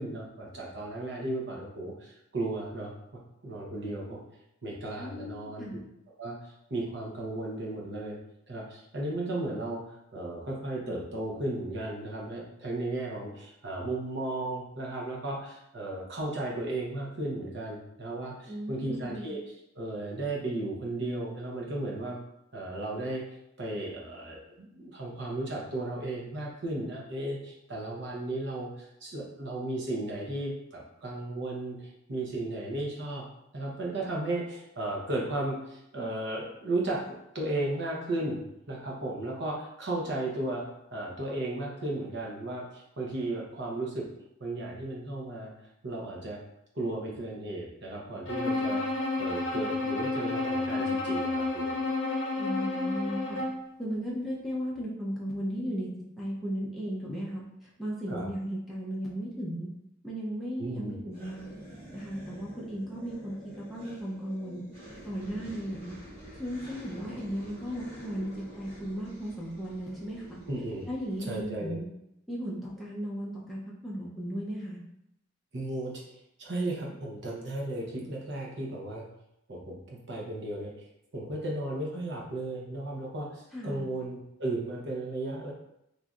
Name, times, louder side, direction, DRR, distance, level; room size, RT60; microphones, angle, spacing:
voice 1, 0.0-4.2 4.6-5.8 6.2-8.2 8.5-22.2 22.5-23.2 23.6-33.3 33.5-37.1 37.3-40.7 40.9-44.1 44.4-45.5 45.8-46.4 46.7-48.8 49.2-51.8 58.1-58.3 60.6-61.0 70.5-70.9 71.3-71.8 75.5-76.0 76.4-79.0 79.5-80.9 81.1-85.5, right 2 dB, 65° right, -3 dB, 0.8 m, -35 dB
voice 2, 5.0-5.8 18.5-19.3 52.4-53.4 53.8-55.9 56.2-59.7 60.0-61.6 61.9-64.6 65.0-66.0 66.3-68.3 68.6-70.4 70.9-71.9 72.3-74.8 83.5-83.9, equal, ahead, -6 dB, 0.5 m, -36 dB
Bowed string instrument, 48.3-53.7, left 3 dB, 70° left, 0.7 m, -30 dB
sound 1, 61.1-71.4, right 1 dB, 35° right, 1.2 m, -48 dB
3.1 x 2.6 x 2.4 m, 0.82 s
head